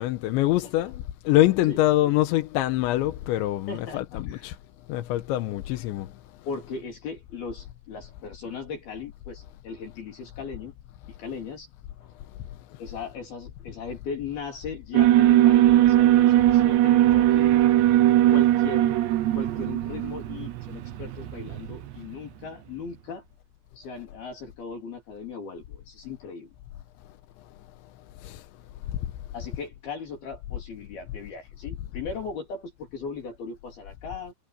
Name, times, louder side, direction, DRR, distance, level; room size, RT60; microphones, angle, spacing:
voice 1, 0.0-4.6 4.9-6.1 28.2-28.4, left 15 dB, 85° left, 3.3 m, -24 dB
voice 2, 3.7-4.6 6.5-10.7 11.2-11.7 12.0-12.1 12.8-17.6 18.3-19.0 19.3-23.2 23.8-26.5 29.3-34.3, left 5 dB, 60° left, 5.3 m, -38 dB
Alarm, 14.9-22.1, right 13 dB, 75° right, 3.4 m, -20 dB
omnidirectional pair, 5.2 m